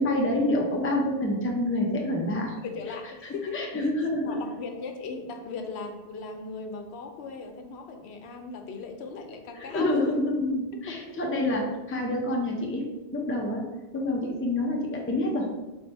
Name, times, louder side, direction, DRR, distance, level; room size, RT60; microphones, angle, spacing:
voice 1, 0.0-2.5 3.2-4.4 9.7-12.9 13.1-13.7 13.9-15.5, left 1 dB, 15° left, 0 dB, 0.4 m, -27 dB
voice 2, 2.6-3.9 4.2-10.1 10.9-11.2, left 4 dB, 75° left, 5 dB, 0.8 m, -38 dB
3.5 x 3.2 x 4.0 m, 1.1 s
omnidirectional pair, 1.1 m